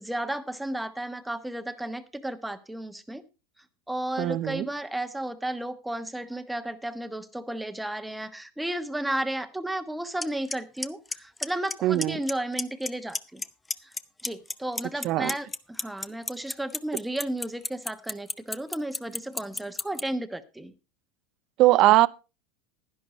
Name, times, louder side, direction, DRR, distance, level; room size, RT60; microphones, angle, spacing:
voice 1, 0.0-3.2 3.9-13.4 13.8-13.9 14.2-20.7, right 1 dB, 5° right, 1.2 m, -33 dB
voice 2, 4.2-4.7 11.8-12.2 15.0-15.3 21.6-22.1, right 17 dB, 50° right, 0.5 m, -20 dB
Clock, 10.2-10.3 10.5-10.9 11.1-11.7 12.0-12.3 12.6-13.4 13.7-20.0, left 3 dB, 15° left, 0.6 m, -29 dB
11.0 x 10.5 x 4.2 m
hypercardioid pair, 100°, 0 cm